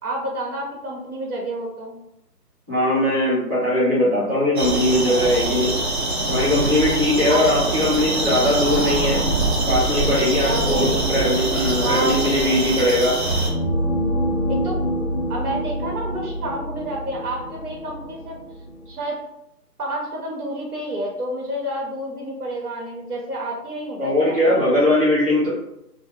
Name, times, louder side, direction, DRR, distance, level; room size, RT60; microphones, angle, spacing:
voice 1, 0.0-2.0 7.3-7.4 10.4-11.1 11.8-12.2 14.5-14.8 15.3-18.4 18.9-19.2 19.8-24.9, right 1 dB, 65° right, -1 dB, 0.9 m, -29 dB
voice 2, 2.7-5.7 6.3-9.2 9.7-13.1 24.0-25.5, left 1 dB, 10° right, -14 dB, 0.8 m, -20 dB
sound 1, 4.6-13.5, right 2 dB, 40° right, 0.6 m, -23 dB
sound 2, 13.0-19.0, equal, 50° left, 0.5 m, -26 dB
2.3 x 2.2 x 3.9 m, 0.83 s
figure-of-eight pair, 155°, 49 cm